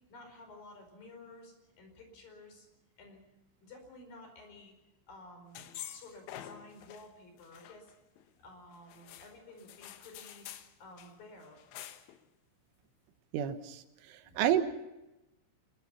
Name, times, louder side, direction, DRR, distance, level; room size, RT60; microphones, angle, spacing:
voice 1, 0.0-2.7 3.0-3.2 3.6-4.7 5.1-7.9 8.4-10.4 10.8-11.6 14.2-14.4, left 2 dB, 45° left, 5 dB, 6.4 m, -53 dB
sound 1, 5.6-7.1 7.4-8.3 8.9-10.7 11.0-11.1 11.4-12.2, left 11 dB, 85° left, 3.8 m, -48 dB
voice 2, 13.3-14.6, right 11 dB, 80° right, 9 dB, 3.7 m, -30 dB
26.5 x 22.0 x 5.7 m, 0.97 s
omnidirectional pair, 5.6 m